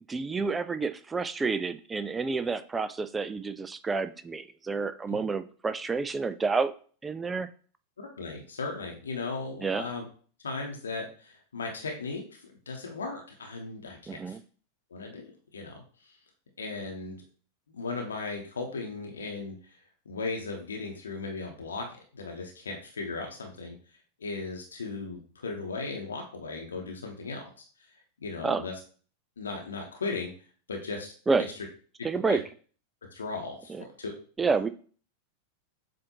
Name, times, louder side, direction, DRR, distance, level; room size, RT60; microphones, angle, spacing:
voice 1, 0.1-6.7 7.0-7.5 9.6-9.9 14.1-14.4 28.4-28.6 31.3-31.5 32.0-32.4 33.7-33.8 34.4-34.7, right 4 dB, 15° right, 13 dB, 0.3 m, -29 dB
voice 2, 8.0-10.0 10.4-14.4 14.9-15.3 15.5-15.8 16.6-17.2 17.7-19.8 20.1-21.8 22.1-23.7 24.2-27.5 28.2-28.7 29.4-30.3 30.7-31.1 32.3-32.4 33.1-34.2, left 3 dB, 70° left, 1 dB, 0.8 m, -36 dB
7.3 x 2.6 x 2.8 m, 0.42 s
figure-of-eight pair, 90°, 0 cm